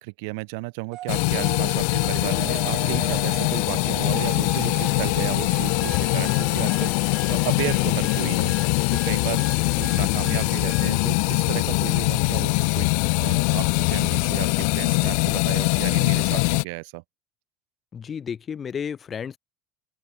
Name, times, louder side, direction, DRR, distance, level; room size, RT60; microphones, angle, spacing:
voice 1, 0.0-12.9 13.1-17.0, right 30 dB, 70° right, 1.3 m, -33 dB
sound 1, 0.9-8.4, right 14 dB, 40° right, 1.5 m, -39 dB
sound 2, 1.1-16.6, left 40 dB or more, 60° left, 0.6 m, -22 dB
sound 3, 5.8-11.1, right 3 dB, 10° right, 5.5 m, -42 dB
voice 2, 17.9-19.4, left 7 dB, 20° left, 1.8 m, -32 dB
open air
cardioid pair, 175°, 0 cm